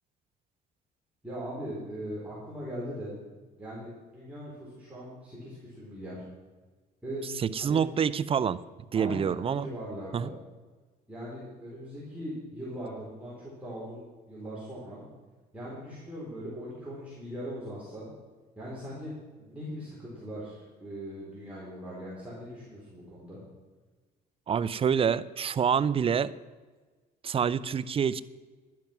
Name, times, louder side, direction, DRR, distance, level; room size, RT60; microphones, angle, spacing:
voice 1, 1.2-3.1 3.6-6.2 7.0-7.2 7.6-7.8 8.9-10.3 11.1-15.0 15.5-18.1 18.6-23.4, equal, 10° right, -8 dB, 4.5 m, -40 dB
voice 2, 7.4-8.6 8.9-9.7 10.1-10.3 24.5-26.3 27.2-28.2, right 7 dB, 35° right, 17 dB, 0.5 m, -27 dB
12.0 x 10.5 x 6.1 m, 1.3 s
cardioid pair, 110°, 17 cm